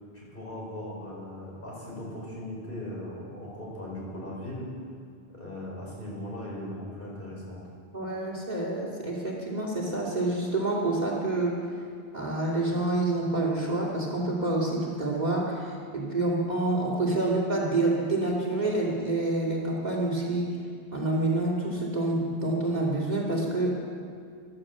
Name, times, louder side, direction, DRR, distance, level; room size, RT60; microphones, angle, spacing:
voice 1, 0.1-4.7 5.3-7.6, left 1 dB, 55° left, -5 dB, 5.0 m, -38 dB
voice 2, 7.9-11.6 12.1-20.6 20.9-23.8, right 2 dB, 40° right, -2 dB, 2.7 m, -27 dB
14.5 x 12.0 x 7.5 m, 2.2 s
omnidirectional pair, 1.1 m